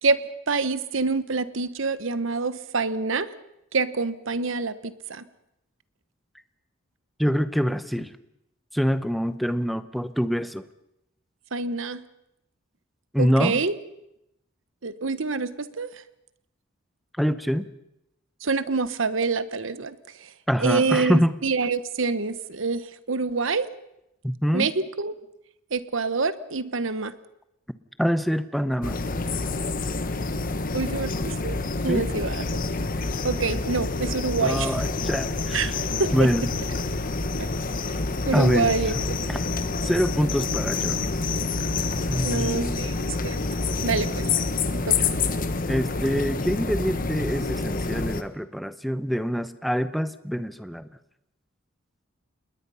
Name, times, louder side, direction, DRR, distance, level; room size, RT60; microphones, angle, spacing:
voice 1, 0.5-3.3 3.7-5.2 11.5-12.0 13.2-13.7 14.8-16.0 18.4-20.0 20.2-20.3 20.6-23.7 24.5-25.1 25.7-27.2 30.7-31.6 31.8-32.4 33.2-34.7 35.5-35.7 36.0-36.3 37.4-37.5 38.3-39.1 42.2-42.9 43.2-43.4 43.8-44.1 44.7-45.0, right 4 dB, 65° right, 14 dB, 1.1 m, -26 dB
voice 2, 7.2-8.1 8.7-10.6 13.1-13.6 17.2-17.7 20.5-21.3 24.2-24.7 28.0-29.0 31.9-32.1 34.4-35.7 36.1-36.5 38.3-38.8 39.3-39.4 39.8-41.1 42.1-42.9 45.7-50.9, equal, ahead, 12 dB, 0.8 m, -25 dB
sound 1, 28.8-48.2, left 3 dB, 40° left, 1.3 m, -27 dB
27.5 x 20.5 x 5.6 m, 0.84 s
head